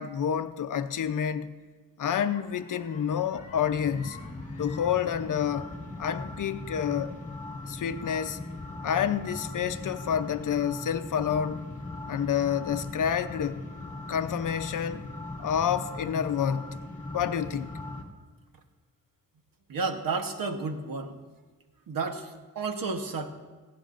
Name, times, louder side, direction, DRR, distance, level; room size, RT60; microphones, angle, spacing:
voice 1, 0.0-1.5 2.0-4.2 4.6-5.7 6.0-7.2 7.7-8.4 8.8-11.7 12.1-13.6 14.1-15.0 15.4-16.8 17.1-17.7, left 8 dB, 60° left, 0.7 m, -28 dB
sound 1, 2.2-18.0, left 2 dB, 20° left, 1.7 m, -40 dB
voice 2, 19.7-21.1 21.9-23.3, right 4 dB, 70° right, 1.1 m, -32 dB
16.0 x 16.0 x 2.5 m
wide cardioid pair, 115°, 35 cm